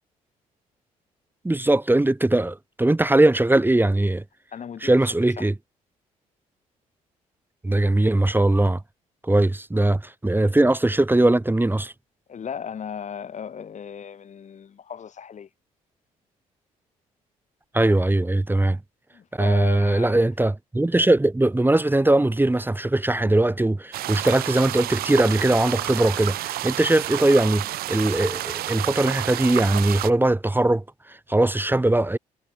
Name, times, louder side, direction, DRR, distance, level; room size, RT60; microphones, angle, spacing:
voice 1, 1.4-4.2 4.8-5.5 7.6-8.8 9.2-11.9 17.7-18.8 19.3-32.2, right 2 dB, 10° right, 1.3 m, -20 dB
voice 2, 4.5-5.0 5.4-5.5 12.3-15.5 19.1-20.2, left 7 dB, 45° left, 1.3 m, -36 dB
sound 1, 23.9-30.1, right 15 dB, 60° right, 0.5 m, -30 dB
hypercardioid pair, 50°, 17 cm